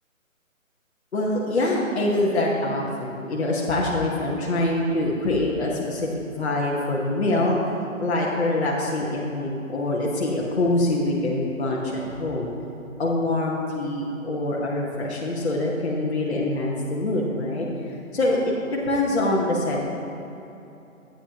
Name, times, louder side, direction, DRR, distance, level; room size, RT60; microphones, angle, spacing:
voice 1, 1.1-6.1 6.4-7.7 8.0-12.5 13.0-17.7 18.1-19.8, left 2 dB, 50° left, -4 dB, 1.2 m, -24 dB
13.5 x 8.8 x 2.9 m, 3.0 s
hypercardioid pair, 165°, 41 cm